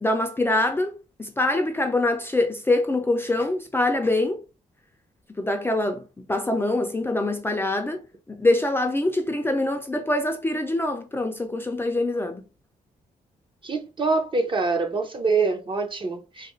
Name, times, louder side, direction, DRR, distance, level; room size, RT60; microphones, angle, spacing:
voice 1, 0.0-4.4 5.4-6.0 6.3-8.0 8.3-12.4, left 2 dB, 15° left, 0.4 m, -24 dB
voice 2, 13.6-16.5, right 4 dB, 35° right, 0.6 m, -25 dB
2.7 x 2.4 x 3.0 m
cardioid pair, 90°, 15 cm